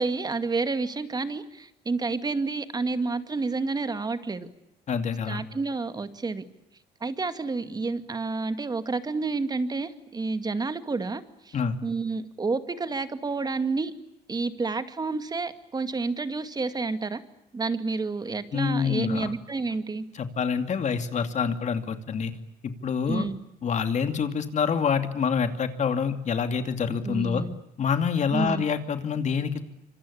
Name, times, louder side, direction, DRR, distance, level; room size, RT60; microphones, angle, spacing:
voice 1, 0.0-4.5 5.3-6.4 7.0-11.6 11.8-13.9 14.3-17.2 17.5-20.0 23.1-23.4 27.0-27.5 28.3-28.6, right 3 dB, 25° right, 11 dB, 2.2 m, -29 dB
voice 2, 4.9-5.4 11.5-11.8 18.5-19.3 20.1-22.3 22.6-23.3 23.6-27.5 27.8-29.6, left 6 dB, 45° left, 9 dB, 2.6 m, -26 dB
26.5 x 25.5 x 8.7 m, 0.84 s
cardioid pair, 110°, 17 cm